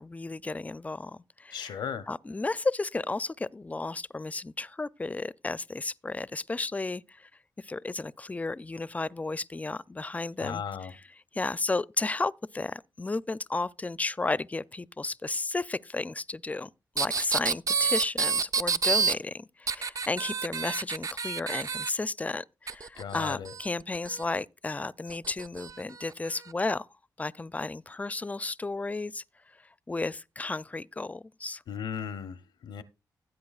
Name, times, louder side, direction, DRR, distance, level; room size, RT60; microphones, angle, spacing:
voice 1, 0.0-7.3 7.6-11.0 11.3-16.7 17.0-26.9 27.2-29.2 29.9-31.6, left 3 dB, 20° left, 0.4 m, -33 dB
voice 2, 1.5-2.1 10.4-10.9 23.0-23.5 31.7-32.8, left 7 dB, 85° left, 0.7 m, -36 dB
sound 1, 17.0-19.1 19.7-21.9 22.7-24.2 25.1-25.7 26.5-26.6, right 5 dB, 45° right, 0.4 m, -28 dB
15.5 x 8.3 x 2.4 m
cardioid pair, 65°, 8 cm